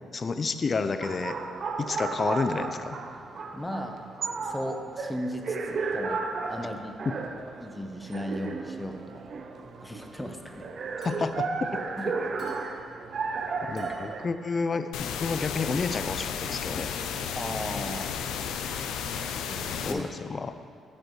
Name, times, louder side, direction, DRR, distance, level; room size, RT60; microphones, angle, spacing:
voice 1, 0.1-1.4 1.8-3.0 7.1-7.2 11.0-11.8 13.6-16.9 19.8-20.5, left 4 dB, 35° left, 10 dB, 0.4 m, -30 dB
sound 1, 1.0-14.3, right 4 dB, 55° right, 0.6 m, -34 dB
voice 2, 3.5-4.0 4.4-6.2 6.5-7.0 7.6-9.2 9.8-10.7 12.0-12.1 17.3-18.1 19.5-20.0, left 1 dB, 10° left, 4 dB, 0.8 m, -36 dB
Chink clink, 11.0-11.5 12.4-12.9 13.8-14.3 15.0-15.2 16.1-16.3, left 2 dB, 50° left, 2.2 m, -53 dB
sound 2, 14.9-19.9, left 7 dB, 90° left, 0.5 m, -33 dB
14.5 x 5.3 x 3.1 m, 2.4 s
cardioid pair, 90°, 0 cm